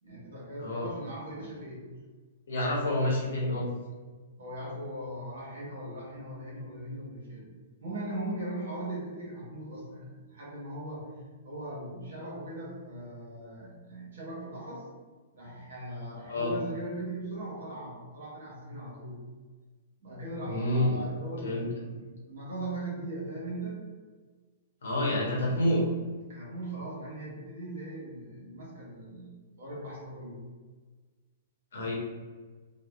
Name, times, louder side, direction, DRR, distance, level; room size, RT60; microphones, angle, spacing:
voice 1, 0.0-1.8 4.4-7.5 7.8-11.1 11.4-14.9 15.3-19.1 20.0-23.8 26.3-30.4, right 1 dB, 65° right, -5 dB, 1.2 m, -39 dB
voice 2, 2.5-3.7 16.3-16.6 20.4-21.0 21.4-21.7 24.8-25.8 31.7-31.9, left 1 dB, 60° left, -3 dB, 0.9 m, -28 dB
3.0 x 2.2 x 2.3 m, 1.4 s
figure-of-eight pair, 110°, 0 cm